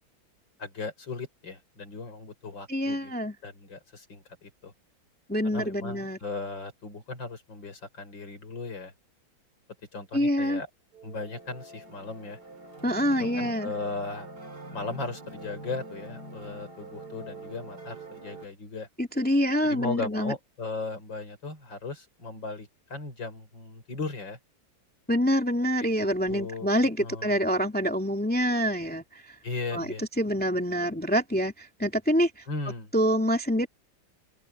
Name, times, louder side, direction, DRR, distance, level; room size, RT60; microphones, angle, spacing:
voice 1, 0.6-3.1 3.4-4.7 5.4-8.9 9.9-10.7 11.0-12.4 13.2-14.3 14.7-18.9 19.6-24.4 25.8-26.7 27.0-27.4 29.4-30.0 32.5-32.9, left 3 dB, 65° left, 6.1 m, -37 dB
voice 2, 2.7-3.3 5.3-6.2 10.1-10.6 12.8-13.7 19.0-20.3 25.1-29.0 29.7-32.4 32.9-33.7, equal, 5° left, 2.3 m, -26 dB
sound 1, 10.9-18.5, right 1 dB, 50° right, 4.0 m, -44 dB
open air
omnidirectional pair, 2.2 m